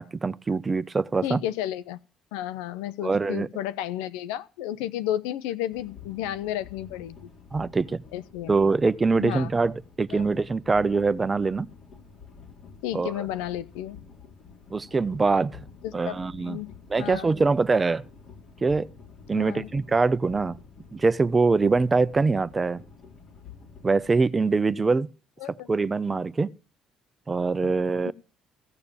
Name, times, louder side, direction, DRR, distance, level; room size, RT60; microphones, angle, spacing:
voice 1, 0.0-1.4 3.0-3.5 7.5-8.0 8.5-11.7 12.9-13.1 14.7-15.6 15.9-16.6 16.9-18.0 18.6-18.9 19.3-20.6 20.9-22.8 23.8-25.1 25.7-26.5 27.3-28.1, right 4 dB, 30° right, 0.7 m, -23 dB
voice 2, 1.2-2.0 2.3-7.3 8.1-8.5 9.2-9.5 10.1-10.2 12.8-14.0 15.8-16.7 17.0-17.3 19.3-19.7 25.4-25.7 27.6-27.7 28.0-28.1, left 12 dB, 85° left, 0.6 m, -32 dB
sound 1, 5.7-24.2, left 5 dB, 60° left, 3.6 m, -49 dB
15.5 x 6.9 x 7.1 m
hypercardioid pair, 55°, 0 cm